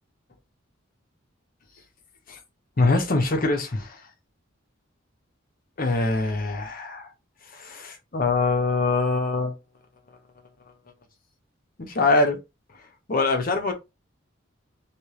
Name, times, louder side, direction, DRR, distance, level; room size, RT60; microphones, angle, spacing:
voice 1, 2.8-4.0 5.8-7.1 7.5-9.5 11.8-12.4 13.1-13.7, left 3 dB, 45° left, 0.7 m, -23 dB
3.2 x 2.8 x 3.0 m
head